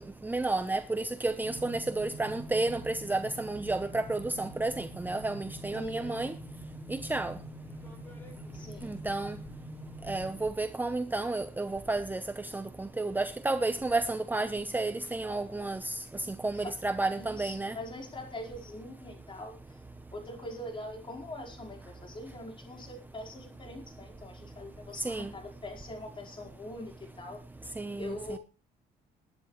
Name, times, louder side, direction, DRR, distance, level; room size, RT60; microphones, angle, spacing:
voice 1, 0.0-6.3 6.9-7.4 8.8-9.4 10.1-12.2 12.5-16.0 16.4-17.7 25.0-25.3 27.8-28.4, right 2 dB, 10° right, 0.9 m, -31 dB
sound 1, 1.4-10.5, equal, 10° left, 6.5 m, -45 dB
voice 2, 5.7-6.3 8.5-8.9 16.6-16.7 17.2-19.5 20.1-27.4 28.0-28.4, left 1 dB, 30° left, 4.7 m, -43 dB
20.0 x 10.5 x 3.2 m
cardioid pair, 110°, 17 cm